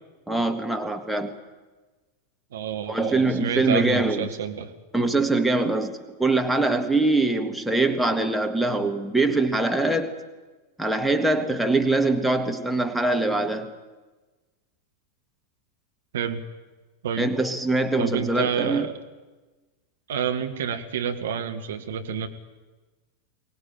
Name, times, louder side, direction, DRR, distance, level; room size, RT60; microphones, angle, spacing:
voice 1, 0.3-1.3 2.9-4.3 4.9-10.1 10.8-13.7 17.2-18.9, right 2 dB, ahead, 4 dB, 1.8 m, -23 dB
voice 2, 2.5-4.7 16.1-16.4 17.0-17.3 18.0-18.9 20.1-22.3, right 7 dB, 60° right, 7 dB, 1.7 m, -28 dB
23.0 x 19.5 x 9.1 m, 1.2 s
figure-of-eight pair, 90°, 0 cm